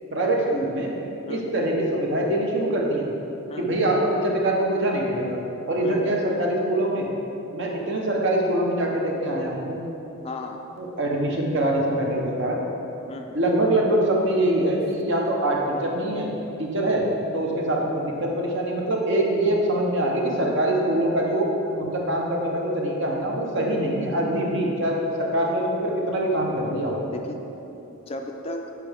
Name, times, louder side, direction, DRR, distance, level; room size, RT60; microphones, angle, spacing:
voice 1, 0.1-0.9 1.3-3.1 3.6-5.4 5.7-7.1 7.5-9.8 10.8-12.6 13.3-16.3 16.6-17.0 17.3-21.5 21.8-27.0, right 1 dB, 55° right, -1 dB, 0.9 m, -24 dB
voice 2, 5.8-6.1 10.2-10.6 13.1-13.4 27.1-27.4 27.9-28.7, left 2 dB, 30° left, 4 dB, 0.3 m, -36 dB
7.6 x 4.7 x 3.5 m, 3.0 s
head